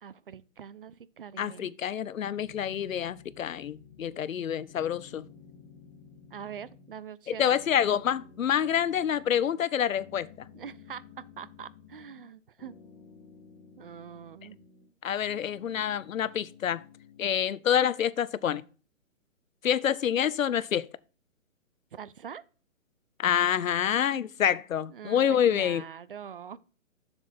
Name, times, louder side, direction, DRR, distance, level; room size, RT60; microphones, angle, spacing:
voice 1, 0.0-1.7 6.3-7.6 10.5-12.7 13.8-14.6 21.9-22.4 24.9-26.6, right 8 dB, 45° right, 0.4 m, -44 dB
voice 2, 1.4-5.2 7.3-10.3 15.0-16.8 17.2-18.6 19.6-20.9 23.2-25.8, left 9 dB, 85° left, 0.7 m, -27 dB
sound 1, 2.4-4.4 4.7-7.0 7.3-9.7 9.9-12.3 12.6-14.9 15.2-17.6, left 6 dB, 15° left, 1.3 m, -53 dB
7.4 x 7.0 x 4.2 m
hypercardioid pair, 160°, 39 cm